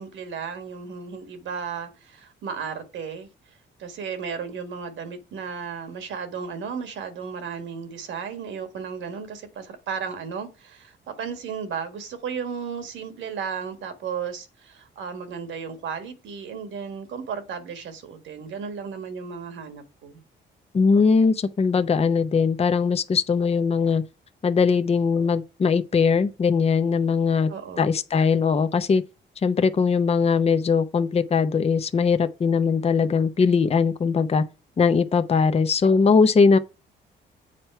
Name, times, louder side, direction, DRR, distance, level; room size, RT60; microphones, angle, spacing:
voice 1, 0.0-20.2 27.5-28.0, right 6 dB, 75° right, 1.7 m, -34 dB
voice 2, 20.7-24.0 24.4-27.5 27.8-29.0 29.4-34.4 34.8-36.6, left 5 dB, 30° left, 0.7 m, -20 dB
7.5 x 4.3 x 4.5 m
cardioid pair, 90°, 20 cm